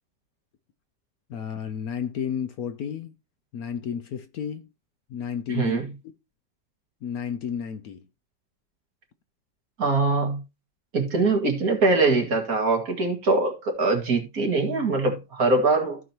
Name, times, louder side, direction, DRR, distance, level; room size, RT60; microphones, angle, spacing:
voice 1, 1.3-3.1 3.5-4.7 5.1-5.8 7.0-8.1, left 7 dB, 65° left, 1.1 m, -32 dB
voice 2, 5.5-5.8 9.8-10.4 10.9-16.0, right 3 dB, 55° right, 2.4 m, -23 dB
15.0 x 5.1 x 2.9 m
omnidirectional pair, 1.9 m